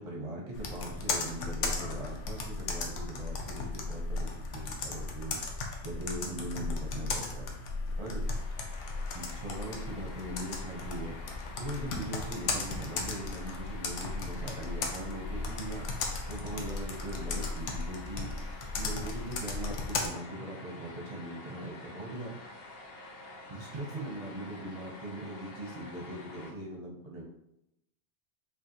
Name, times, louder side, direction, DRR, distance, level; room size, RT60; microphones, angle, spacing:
voice 1, 0.0-5.4 5.8-7.5 8.0-8.2 9.1-11.2 11.6-15.9 16.3-22.4 23.5-27.2, right 1 dB, 35° right, -1 dB, 0.6 m, -40 dB
Computer keyboard, 0.5-20.1, left 3 dB, 85° left, 1.0 m, -36 dB
sound 1, 8.2-26.5, left 2 dB, 60° left, 0.8 m, -49 dB
5.2 x 2.4 x 2.8 m, 0.83 s
omnidirectional pair, 1.2 m